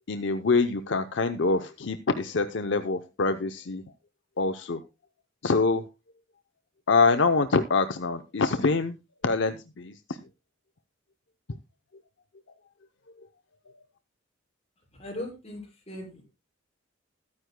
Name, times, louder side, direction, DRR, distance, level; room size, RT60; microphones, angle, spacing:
voice 1, 0.1-3.8 4.4-4.8 5.4-5.8 6.9-9.0 9.2-10.2, left 4 dB, 60° left, 9 dB, 0.7 m, -25 dB
voice 2, 15.0-16.2, left 1 dB, 30° left, -1 dB, 6.2 m, -38 dB
21.0 x 9.7 x 2.2 m, 0.26 s
head